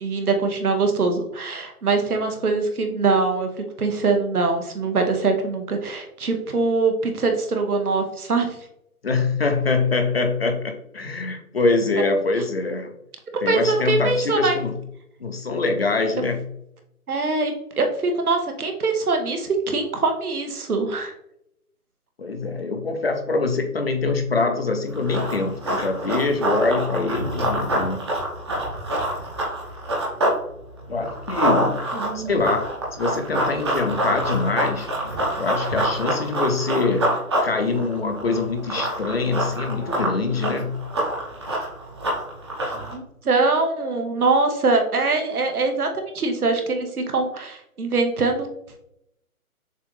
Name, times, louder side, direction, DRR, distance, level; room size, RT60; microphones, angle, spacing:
voice 1, 0.0-3.5 3.8-8.5 13.3-14.5 17.1-21.1 31.9-32.4 42.9-45.9 46.1-48.5, right 3 dB, 75° right, 5 dB, 1.1 m, -23 dB
voice 2, 9.0-12.9 13.4-14.7 15.2-16.4 22.2-28.1 30.9-31.8 32.1-34.9 35.4-37.1 37.4-40.8, left 3 dB, 45° left, 5 dB, 0.6 m, -24 dB
Run, 24.9-30.4 30.7-42.9, right 1 dB, 20° right, 0.8 m, -26 dB
6.6 x 2.5 x 3.1 m, 0.78 s
figure-of-eight pair, 155°, 45 cm